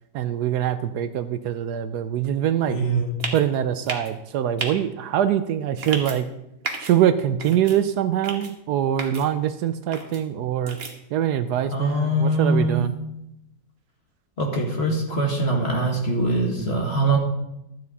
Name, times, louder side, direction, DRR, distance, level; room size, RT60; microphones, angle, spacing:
voice 1, 0.1-2.9 3.3-6.3 6.8-10.8 11.1-12.9, right 10 dB, 75° right, 11 dB, 1.1 m, -23 dB
voice 2, 2.7-3.1 11.7-12.8 14.4-17.2, right 2 dB, 35° left, 0 dB, 1.9 m, -23 dB
sound 1, 3.2-3.4 3.9-4.1 4.6-4.7 5.8-6.2 6.6-6.9 7.4-7.8 8.2-8.5 9.0-9.2 9.9-10.2 10.7-10.9, right 3 dB, 35° right, 1.4 m, -31 dB
12.5 x 8.3 x 4.1 m, 0.86 s
omnidirectional pair, 1.8 m